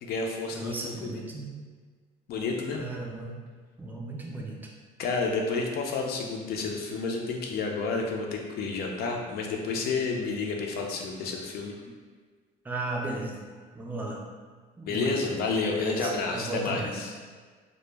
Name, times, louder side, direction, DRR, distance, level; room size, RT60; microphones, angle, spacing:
voice 1, 0.0-0.7 1.0-1.2 2.3-2.8 5.0-11.7 14.9-17.1, left 4 dB, 65° left, 1 dB, 0.4 m, -30 dB
voice 2, 0.5-1.5 2.8-3.4 3.8-4.6 12.6-13.4 13.7-14.2 14.8-15.4 15.7-16.9, right 2 dB, 10° right, -2 dB, 0.4 m, -35 dB
2.1 x 2.0 x 3.2 m, 1.5 s
cardioid pair, 110°, 17 cm